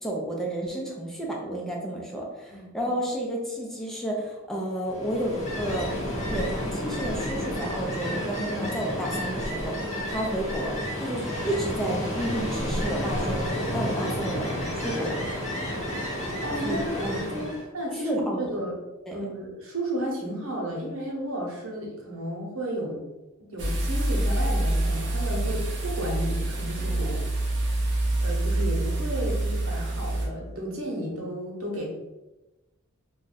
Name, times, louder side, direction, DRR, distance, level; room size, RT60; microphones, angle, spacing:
voice 1, 0.0-5.9 6.3-9.7 10.1-15.2 16.6-17.5 18.0-18.4 19.1-19.2, right 1 dB, ahead, -2 dB, 0.5 m, -31 dB
Ocean, 4.9-17.6, equal, 35° left, 0.8 m, -31 dB
voice 2, 16.4-16.8 17.1-18.7 19.1-23.0 23.4-27.6 28.2-31.9, equal, 90° right, -2 dB, 0.9 m, -33 dB
sound 1, 23.6-30.3, right 1 dB, 60° right, 0.7 m, -26 dB
2.6 x 2.3 x 3.9 m, 1.0 s
head